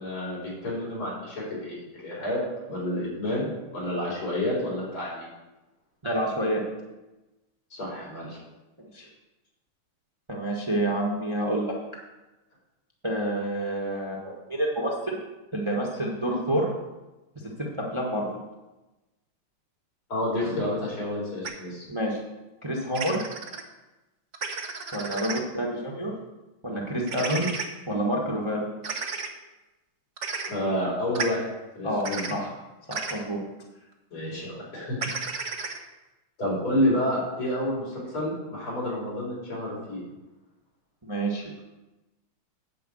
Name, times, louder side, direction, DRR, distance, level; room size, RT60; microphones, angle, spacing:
voice 1, 0.0-2.4 2.7-5.3 7.7-8.4 20.1-21.9 30.5-31.5 31.8-32.3 34.1-35.0 36.4-40.0, left 1 dB, 75° left, -5 dB, 5.2 m, -29 dB
voice 2, 6.0-6.6 8.8-9.1 10.3-11.7 13.0-15.1 15.5-16.7 17.6-18.3 21.9-22.2 22.6-23.2 24.9-26.1 26.6-27.5 27.9-28.7 31.8-32.5 32.9-33.4 41.0-41.5, right 1 dB, 15° right, -1 dB, 1.2 m, -28 dB
sound 1, 21.4-21.5 22.9-23.6 24.3-25.4 27.1-27.7 28.8-29.3 30.2-30.5 31.1-31.3 32.0-32.3 32.9-33.2 35.0-35.8, right 5 dB, 45° right, 1.0 m, -32 dB
10.0 x 5.1 x 7.9 m, 1.1 s
omnidirectional pair, 2.3 m